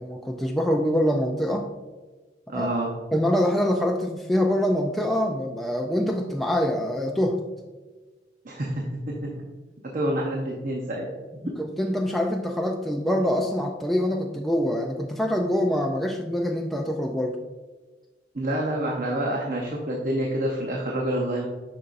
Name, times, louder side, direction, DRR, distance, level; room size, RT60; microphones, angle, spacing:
voice 1, 0.0-1.7 2.5-2.7 3.1-7.4 11.4-17.4, equal, ahead, 0 dB, 0.3 m, -25 dB
voice 2, 2.5-2.9 8.4-9.3 9.9-11.1 18.3-21.5, right 1 dB, 50° right, -1 dB, 0.7 m, -27 dB
7.0 x 5.3 x 2.5 m, 1.3 s
head